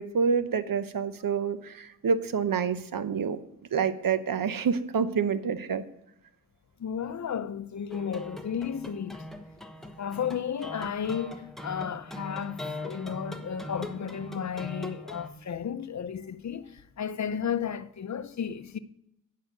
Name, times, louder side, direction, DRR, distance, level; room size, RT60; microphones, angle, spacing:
voice 1, 0.0-3.4 3.7-5.8, right 6 dB, 60° right, 0.8 m, -27 dB
voice 2, 6.8-9.2 10.0-18.8, left 7 dB, 50° left, 0.7 m, -33 dB
sound 1, 7.9-15.3, left 1 dB, ahead, 1.0 m, -41 dB
10.0 x 5.7 x 6.5 m
cardioid pair, 60°, 38 cm